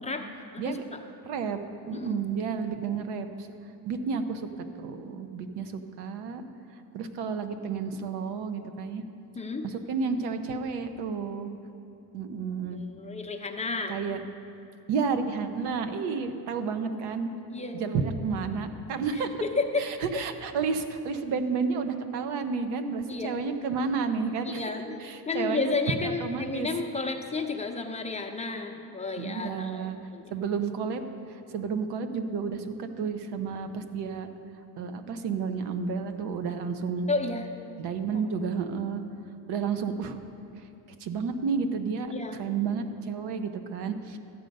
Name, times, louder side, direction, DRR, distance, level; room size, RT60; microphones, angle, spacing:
voice 1, 0.5-1.0 1.9-2.2 9.4-9.6 12.7-14.0 17.5-17.8 19.1-19.9 23.1-23.4 24.4-30.3 37.1-37.5 38.1-38.3 42.1-42.4, left 3 dB, 15° left, 3 dB, 0.7 m, -32 dB
voice 2, 1.3-1.6 1.9-3.5 3.8-4.5 4.8-6.4 6.9-9.0 9.6-11.5 12.1-12.8 13.9-14.2 14.9-17.3 17.7-19.4 19.8-24.6 25.0-25.7 26.0-26.7 29.2-30.0 30.3-31.0 31.5-34.3 34.8-37.1 37.8-39.0 39.5-40.2 41.0-42.1 42.4-44.2, right 5 dB, 75° right, 8 dB, 1.0 m, -31 dB
13.0 x 7.9 x 5.4 m, 2.7 s
cardioid pair, 115°, 40 cm